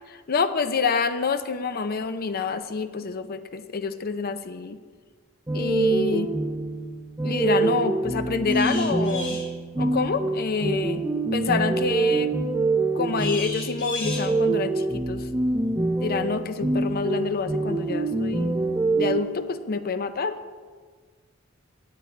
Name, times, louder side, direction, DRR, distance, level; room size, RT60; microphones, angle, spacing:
voice 1, 0.1-4.8 5.5-6.3 7.2-9.4 9.8-11.0 11.3-12.3 12.9-15.3 16.0-18.5 18.9-20.4, left 4 dB, 50° left, 10 dB, 0.6 m, -27 dB
sound 1, 5.5-19.2, right 3 dB, 15° right, 0.6 m, -25 dB
sound 2, 8.5-9.5 13.2-14.3, left 2 dB, 20° left, 2.6 m, -35 dB
17.0 x 9.4 x 3.3 m, 1.5 s
head